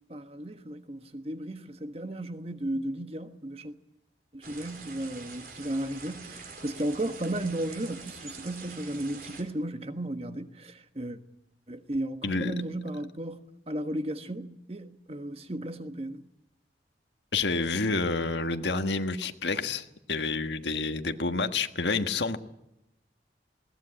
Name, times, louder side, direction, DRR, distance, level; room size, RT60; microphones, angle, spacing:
voice 1, 0.1-3.7 4.3-11.2 11.7-16.2, right 1 dB, 35° right, 1.3 m, -35 dB
sound 1, 4.4-9.4, right 4 dB, 55° right, 4.5 m, -45 dB
voice 2, 12.2-12.5 17.3-22.4, left 3 dB, 80° left, 1.5 m, -29 dB
21.0 x 18.5 x 8.8 m
head